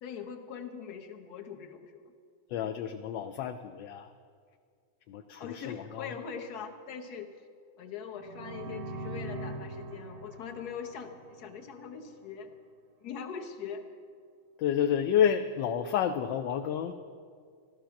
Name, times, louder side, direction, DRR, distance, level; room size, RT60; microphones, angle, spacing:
voice 1, 0.0-2.1 5.4-7.3 7.8-12.5 13.0-13.8, left 7 dB, 55° left, 5 dB, 1.4 m, -42 dB
voice 2, 2.5-4.1 5.1-6.1 14.6-16.9, left 9 dB, 75° left, 7 dB, 1.2 m, -30 dB
sound 1, 8.2-11.9, right 2 dB, 90° right, 1.9 m, -42 dB
14.5 x 13.0 x 5.8 m, 2.1 s
omnidirectional pair, 2.2 m